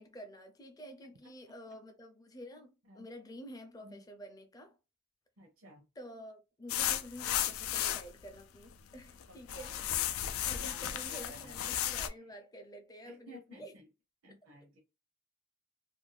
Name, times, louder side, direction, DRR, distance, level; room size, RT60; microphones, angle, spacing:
voice 1, 0.0-4.8 6.0-9.9 10.4-13.7, equal, 20° left, 0.4 m, -49 dB
voice 2, 5.4-5.8 9.3-9.7 10.0-10.8 11.1-11.8 12.2-12.3 13.0-13.8 14.2-14.8, equal, 80° right, 0.7 m, -54 dB
sound 1, 6.7-8.1 8.7-9.2 9.5-12.1, left 11 dB, 90° left, 0.4 m, -34 dB
2.5 x 2.2 x 3.2 m
head